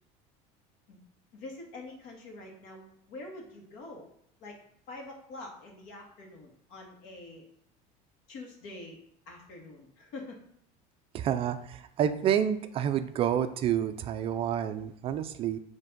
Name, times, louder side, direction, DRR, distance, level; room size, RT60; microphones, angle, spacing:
voice 1, 1.3-4.1 4.4-4.6 4.9-7.5 8.3-9.0 9.3-10.4, left 2 dB, 75° left, 0 dB, 1.9 m, -45 dB
voice 2, 11.1-15.6, right 9 dB, 30° right, 10 dB, 0.3 m, -29 dB
7.2 x 3.3 x 5.1 m, 0.69 s
cardioid pair, 160°, 18 cm